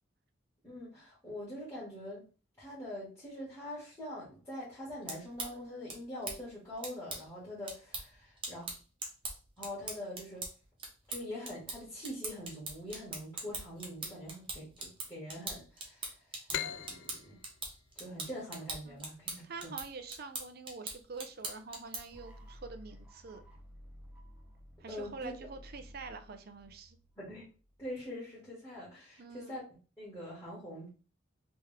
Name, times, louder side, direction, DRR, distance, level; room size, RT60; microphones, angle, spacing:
voice 1, 0.6-2.2 2.6-8.7 9.6-10.5 11.1-17.4 18.0-19.7 24.9-25.3 27.2-27.5 27.8-29.6 30.0-30.9, left 1 dB, 15° left, -11 dB, 1.7 m, -44 dB
sound 1, 4.9-22.2, right 3 dB, 25° right, 1.0 m, -43 dB
sound 2, 16.5-19.9, left 9 dB, 65° left, 0.3 m, -42 dB
voice 2, 19.4-23.4 24.8-27.0 29.2-29.6, right 4 dB, 55° right, 8 dB, 0.5 m, -46 dB
sound 3, 22.1-28.0, equal, 5° right, 0.6 m, -54 dB
3.5 x 3.0 x 3.3 m, 0.36 s
head